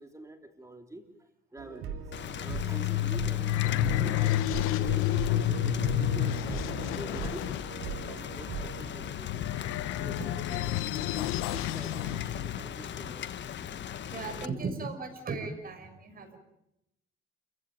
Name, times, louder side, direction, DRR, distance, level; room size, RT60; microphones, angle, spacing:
voice 1, 0.0-2.1 2.4-7.5 8.0-9.4 10.0-13.2 14.3-14.7 15.1-15.2, right 1 dB, 15° right, 6 dB, 3.5 m, -47 dB
sound 1, 1.6-9.1, right 6 dB, 85° right, 3.0 m, -39 dB
Rain, 2.1-14.5, left 9 dB, 60° left, 1.4 m, -40 dB
sound 2, 2.2-12.7, left 13 dB, 90° left, 0.9 m, -30 dB
voice 2, 14.1-16.4, right 4 dB, 45° right, 6 dB, 6.2 m, -36 dB
29.0 x 16.0 x 8.9 m, 0.84 s
cardioid pair, 85°, 21 cm